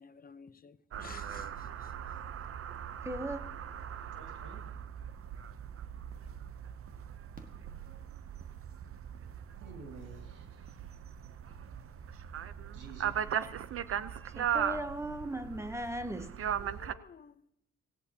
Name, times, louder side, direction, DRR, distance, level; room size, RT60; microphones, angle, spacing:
voice 1, 0.0-1.9 16.6-17.5, left 6 dB, 30° left, 0.7 m, -53 dB
sound 1, 0.9-16.9, right 9 dB, 50° right, 0.7 m, -39 dB
voice 2, 3.0-3.4 14.4-16.4, right 1 dB, 10° right, 0.9 m, -37 dB
voice 3, 4.2-4.7 9.6-10.7 12.7-13.2, right 3 dB, 85° right, 2.3 m, -51 dB
Fireworks, 7.3-8.7 10.4-10.5 10.7-10.8, right 3 dB, 30° right, 1.6 m, -56 dB
17.0 x 17.0 x 2.9 m
cardioid pair, 90°, 30 cm